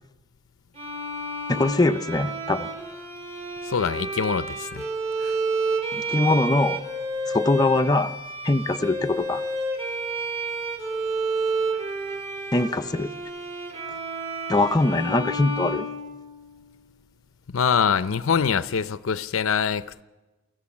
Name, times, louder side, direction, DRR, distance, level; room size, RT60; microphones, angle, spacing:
Bowed string instrument, 0.7-16.6, right 2 dB, 30° right, 4.0 m, -30 dB
voice 1, 1.5-2.7 5.9-6.8 7.3-8.1 8.4-9.4 12.5-13.1 14.5-15.9, left 2 dB, 20° left, 0.6 m, -22 dB
voice 2, 3.7-4.9 5.2-5.3 17.5-20.0, left 6 dB, 85° left, 0.6 m, -24 dB
24.5 x 14.5 x 7.3 m
head